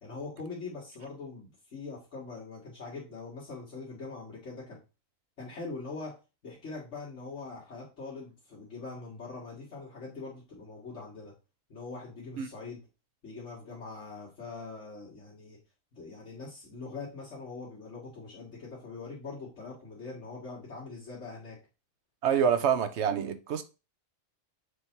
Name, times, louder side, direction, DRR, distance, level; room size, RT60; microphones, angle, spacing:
voice 1, 0.0-4.8 5.4-6.2 6.4-11.3 11.7-12.8 13.2-15.6 15.9-21.6, left 3 dB, 75° left, 2.1 m, -42 dB
voice 2, 22.2-23.6, right 8 dB, 70° right, 1.1 m, -26 dB
6.6 x 3.4 x 4.4 m
omnidirectional pair, 1.2 m